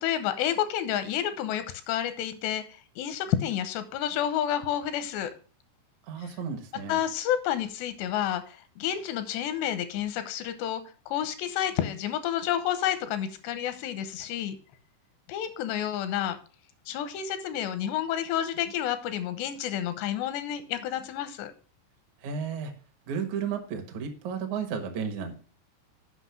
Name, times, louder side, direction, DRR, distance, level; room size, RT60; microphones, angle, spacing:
voice 1, 0.0-2.6 3.0-5.3 6.2-6.3 6.9-10.8 11.1-14.6 15.3-16.4 16.9-21.5, left 10 dB, 85° left, 11 dB, 3.0 m, -30 dB
voice 2, 6.1-7.0 22.2-22.7 23.1-25.3, right 6 dB, 60° right, 4 dB, 2.1 m, -33 dB
8.2 x 5.7 x 5.7 m, 0.39 s
omnidirectional pair, 4.9 m